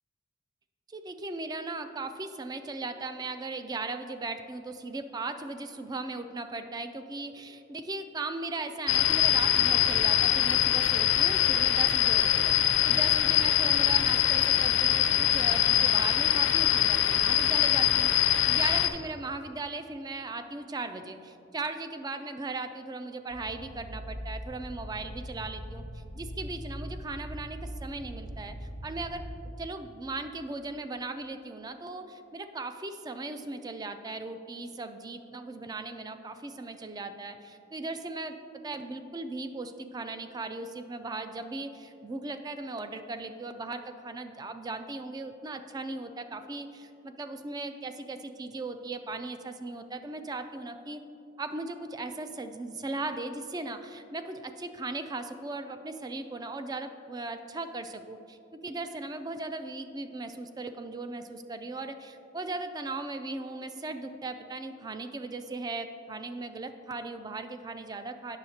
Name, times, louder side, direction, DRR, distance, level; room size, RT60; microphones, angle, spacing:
voice 1, 0.9-28.6 28.8-29.2 29.6-38.4 38.6-51.0 51.4-68.4, right 3 dB, 20° right, 9 dB, 0.3 m, -38 dB
sound 1, 8.9-18.9, left 11 dB, 70° left, 0.4 m, -23 dB
sound 2, 23.3-29.3, equal, 85° right, 1.4 m, -41 dB
8.8 x 6.4 x 2.8 m, 2.8 s
head